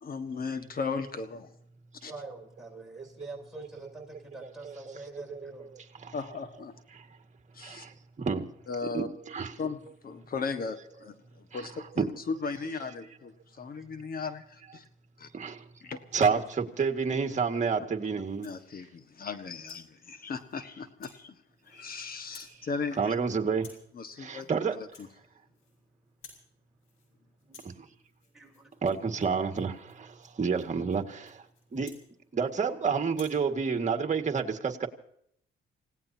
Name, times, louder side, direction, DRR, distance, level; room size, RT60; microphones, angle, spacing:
voice 1, 0.0-1.5 2.0-2.1 6.1-6.7 7.5-7.9 8.7-9.1 9.6-9.8 10.0-14.8 15.2-15.3 15.8-16.0 18.4-21.4 21.6-23.1 23.9-25.1, left 5 dB, 50° left, 9 dB, 1.6 m, -37 dB
voice 2, 2.0-5.8 19.2-19.6 21.6-21.7 25.3-25.9 28.3-28.7, right 2 dB, ahead, -1 dB, 7.7 m, -47 dB
voice 3, 2.7-3.7 4.4-5.0 5.3-5.4 6.0-6.1 6.9-7.1 7.6-8.5 8.8-9.6 11.5-11.6 12.0-12.1 15.3-15.7 16.1-18.5 23.0-23.7 24.2-24.8 28.8-31.5 31.7-31.9 32.3-34.9, right 5 dB, 35° right, 5 dB, 2.0 m, -30 dB
Rattle (instrument), 18.2-18.7 19.2-19.9 20.3-20.6 21.0-21.2 21.5-21.9 22.2-22.6 22.9-23.2 23.5-23.9 24.3-24.5 24.8-25.8 26.1-26.5 26.8-27.1 27.4-32.7 33.1-33.4, left 5 dB, 85° left, 5.8 m, -56 dB
28.5 x 17.5 x 2.9 m, 0.70 s
cardioid pair, 90°, 20 cm